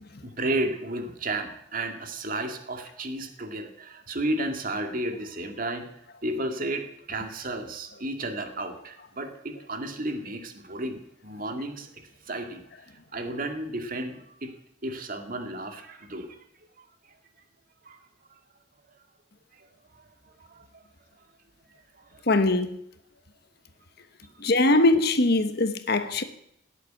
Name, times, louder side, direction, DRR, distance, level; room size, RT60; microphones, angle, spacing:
voice 1, 0.2-5.9 6.2-12.6 12.9-14.5 14.8-16.4 17.8-18.0 19.6-19.7 20.4-20.8 22.0-22.6 24.2-24.3, right 1 dB, 45° right, 2.1 m, -33 dB
voice 2, 22.3-22.8 24.4-26.2, left 2 dB, 55° left, 1.3 m, -22 dB
18.0 x 8.4 x 9.3 m
head